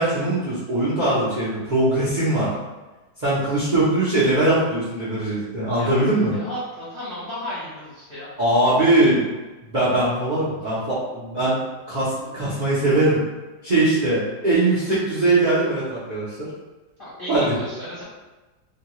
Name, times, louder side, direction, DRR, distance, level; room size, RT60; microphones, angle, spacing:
voice 1, 0.0-2.5 3.2-6.3 8.4-9.3 9.7-11.6 11.9-13.2 13.6-16.4 17.3-17.5, right 2 dB, 65° right, -10 dB, 0.4 m, -21 dB
voice 2, 5.8-8.3 10.6-10.7 17.0-18.0, equal, 45° left, -11 dB, 0.7 m, -34 dB
3.0 x 2.3 x 2.9 m, 1.2 s
omnidirectional pair, 2.0 m